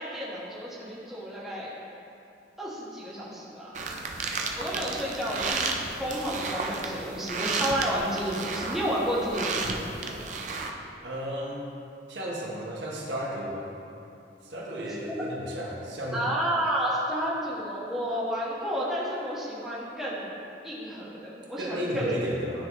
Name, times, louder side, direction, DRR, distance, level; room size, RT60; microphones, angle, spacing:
voice 1, 0.0-1.7 2.6-3.7 4.6-5.7 6.0-9.9 15.1-15.2 16.1-20.3 20.6-22.1, equal, ahead, -9 dB, 1.4 m, -31 dB
sound 1, 3.7-10.7, right 3 dB, 45° right, 0.5 m, -33 dB
voice 2, 11.0-11.8 12.1-13.8 14.4-16.3 21.6-22.7, equal, 85° right, -4 dB, 1.2 m, -33 dB
12.0 x 4.0 x 3.1 m, 2.7 s
head